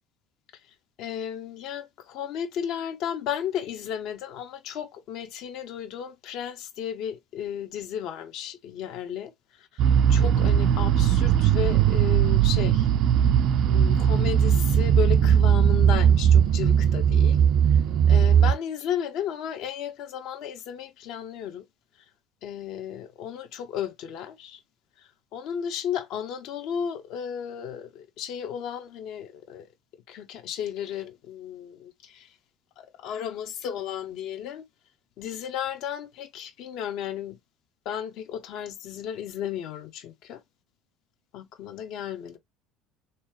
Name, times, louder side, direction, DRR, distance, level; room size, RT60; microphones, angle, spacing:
voice 1, 1.0-9.8 10.1-12.9 13.7-17.4 17.7-17.8 18.1-21.6 22.4-24.6 25.3-29.7 30.1-32.3 32.8-34.6 35.2-37.4 37.8-40.4 41.3-42.4, left 9 dB, 60° left, 0.9 m, -34 dB
sound 1, 9.8-18.5, right 9 dB, 55° right, 0.5 m, -19 dB
3.6 x 3.0 x 3.2 m
hypercardioid pair, 65°, 0 cm